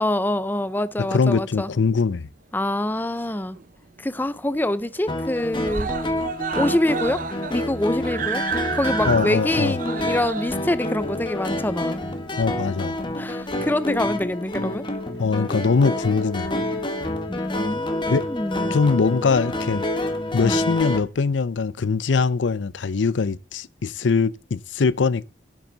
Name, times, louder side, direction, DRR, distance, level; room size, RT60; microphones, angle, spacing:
voice 1, 0.0-1.7 2.5-3.6 4.0-5.9 6.5-7.2 7.5-8.4 8.7-12.0 13.2-14.8 17.3-18.8 20.4-20.6, left 1 dB, 10° left, 0.5 m, -25 dB
voice 2, 1.0-2.3 9.1-9.8 12.4-13.0 15.2-16.5 18.1-18.3 18.7-19.8 20.3-25.3, left 4 dB, 90° left, 0.5 m, -22 dB
Screaming, 2.7-3.7 4.0-4.1 4.4-4.5 4.8-5.3 5.6-12.4 13.3-13.4, right 6 dB, 45° right, 0.7 m, -32 dB
sound 1, 5.1-21.0, left 1 dB, 25° left, 1.4 m, -28 dB
14.5 x 7.5 x 4.0 m
head